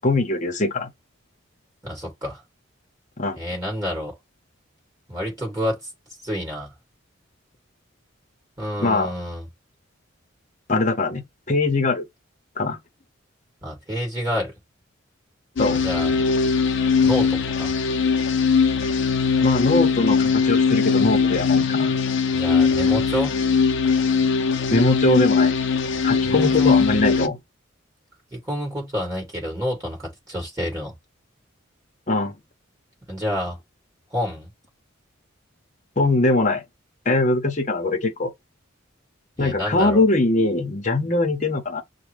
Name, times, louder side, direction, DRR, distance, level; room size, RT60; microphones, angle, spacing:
voice 1, 0.0-0.9 3.2-3.4 8.8-9.1 10.7-12.1 12.6-12.8 15.6-15.8 19.4-21.9 24.7-25.5 26.0-27.4 32.1-32.3 36.0-36.6 37.1-38.3 39.4-41.8, left 2 dB, 35° left, 0.8 m, -21 dB
voice 2, 1.8-2.4 3.3-4.1 5.1-5.8 6.2-6.7 8.6-9.5 13.6-14.5 15.7-16.2 17.0-17.7 22.3-23.3 26.2-27.0 28.3-30.9 33.1-33.6 34.1-34.5 39.4-40.0, equal, 15° right, 2.7 m, -28 dB
sound 1, 15.6-27.3, left 5 dB, 60° left, 0.5 m, -20 dB
6.1 x 2.2 x 3.3 m
head